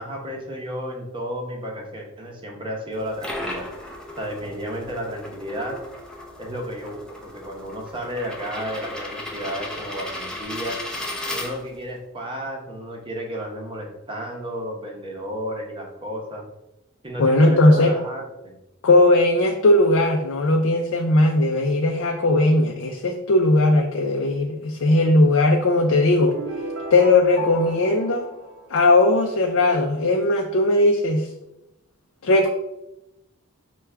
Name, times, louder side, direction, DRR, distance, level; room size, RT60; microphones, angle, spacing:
voice 1, 0.0-3.7 4.2-5.8 6.4-10.8 11.3-16.4 17.0-18.5, equal, 25° right, 0 dB, 0.8 m, -32 dB
sound 1, 2.9-11.9, left 1 dB, 5° left, 0.5 m, -35 dB
voice 2, 17.2-17.9 18.8-26.3 26.9-28.2 28.7-31.3 32.2-32.5, left 2 dB, 65° left, 1 dB, 0.5 m, -18 dB
sound 2, 26.3-29.3, right 1 dB, 70° right, 0.7 m, -35 dB
5.8 x 2.3 x 3.3 m, 0.90 s
head